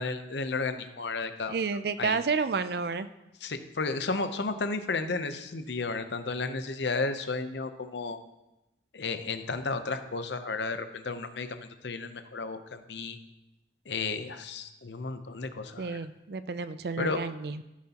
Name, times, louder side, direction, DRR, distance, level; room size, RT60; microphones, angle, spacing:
voice 1, 0.0-1.6 2.0-2.2 3.4-8.2 8.9-13.2 13.9-16.1 17.0-17.3, left 3 dB, 75° left, 9 dB, 0.8 m, -33 dB
voice 2, 1.5-3.1 15.8-17.6, right 4 dB, 60° right, 13 dB, 0.4 m, -30 dB
14.0 x 7.2 x 2.9 m, 0.94 s
head